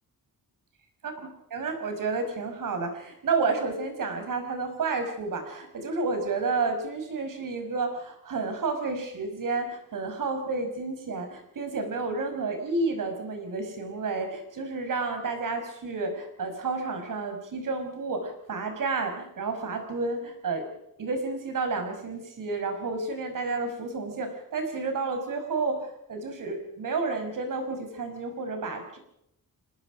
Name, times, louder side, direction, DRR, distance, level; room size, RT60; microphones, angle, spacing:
voice 1, 1.5-20.7 21.0-29.0, right 3 dB, 60° right, 6 dB, 5.7 m, -31 dB
27.5 x 19.0 x 5.1 m, 0.78 s
wide cardioid pair, 180°, 36 cm